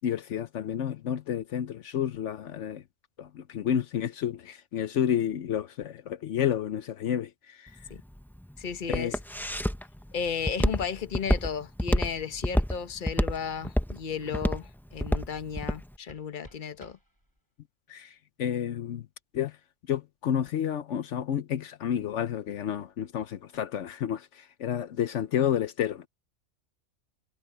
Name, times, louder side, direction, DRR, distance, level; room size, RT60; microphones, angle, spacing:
voice 1, 0.0-2.8 3.2-7.9 8.9-9.2 17.9-19.1 19.3-19.6 19.9-26.1, left 9 dB, 75° left, 1.0 m, -30 dB
Walk footsteps, 7.7-15.8, equal, ahead, 0.5 m, -28 dB
voice 2, 8.6-9.2 10.1-17.0, left 7 dB, 45° left, 1.1 m, -34 dB
sound 1, 15.6-17.7, equal, 15° right, 6.2 m, -57 dB
omnidirectional pair, 1.2 m